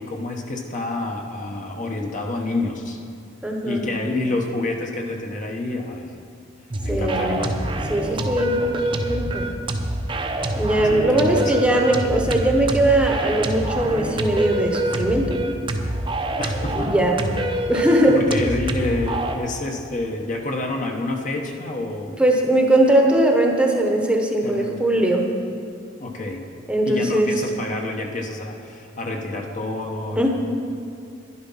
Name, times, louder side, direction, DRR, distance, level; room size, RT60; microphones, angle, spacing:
voice 1, 0.0-3.0 3.6-6.1 6.8-7.6 10.8-11.4 16.4-16.9 18.1-22.1 24.4-24.8 26.0-26.4 26.8-30.3, left 2 dB, 40° left, 2 dB, 1.1 m, -28 dB
voice 2, 3.4-3.8 6.9-7.5 7.9-9.5 10.6-15.4 16.7-17.3 17.7-18.2 22.2-25.3 26.7-27.3 30.2-30.3, right 1 dB, 5° right, 1 dB, 1.0 m, -20 dB
sound 1, 6.7-19.4, right 1 dB, 25° right, 0.8 m, -26 dB
11.0 x 11.0 x 5.7 m, 2.4 s
head